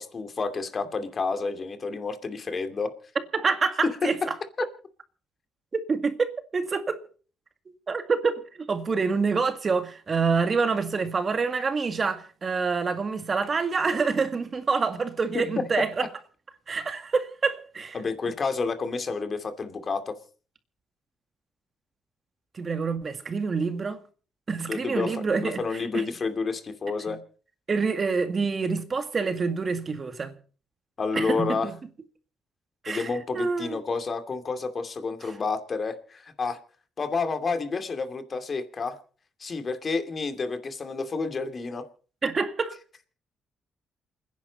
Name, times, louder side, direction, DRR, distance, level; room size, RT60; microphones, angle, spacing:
voice 1, 0.0-2.9 15.3-15.4 17.9-20.1 24.7-27.2 31.0-31.7 32.9-36.6 37.0-39.0 39.4-41.8, left 4 dB, 40° left, 2.6 m, -30 dB
voice 2, 3.3-4.3 5.7-7.0 7.9-8.4 8.7-16.1 16.7-18.0 22.5-24.0 24.5-26.1 27.1-27.2 27.7-30.3 31.1-31.7 32.8-33.8 35.2-35.3 42.2-42.8, right 4 dB, 40° right, 2.0 m, -27 dB
28.5 x 10.5 x 4.1 m
cardioid pair, 90°, 0 cm